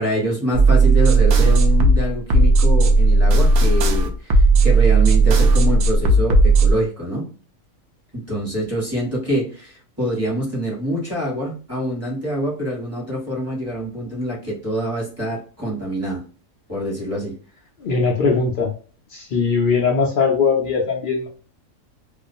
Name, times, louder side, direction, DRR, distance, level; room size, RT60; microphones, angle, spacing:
voice 1, 0.0-7.3 8.1-16.2 16.7-17.3, equal, 10° right, -7 dB, 1.2 m, -25 dB
sound 1, 0.5-6.7, right 3 dB, 65° right, 0.7 m, -14 dB
voice 2, 17.8-18.7 19.1-21.3, left 5 dB, 70° left, -1 dB, 0.4 m, -20 dB
2.5 x 2.3 x 2.6 m, 0.38 s
omnidirectional pair, 1.5 m